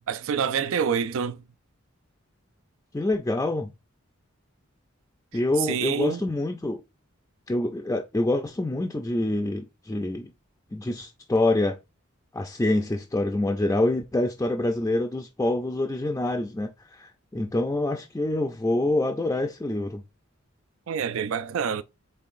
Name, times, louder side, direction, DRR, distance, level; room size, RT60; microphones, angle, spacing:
voice 1, 0.1-1.4 5.6-6.2 20.9-21.8, right 7 dB, 75° right, 0.4 m, -27 dB
voice 2, 2.9-3.7 5.3-6.8 7.5-10.3 10.7-11.8 12.3-20.0, left 2 dB, 15° left, 0.4 m, -26 dB
5.5 x 3.8 x 2.5 m
head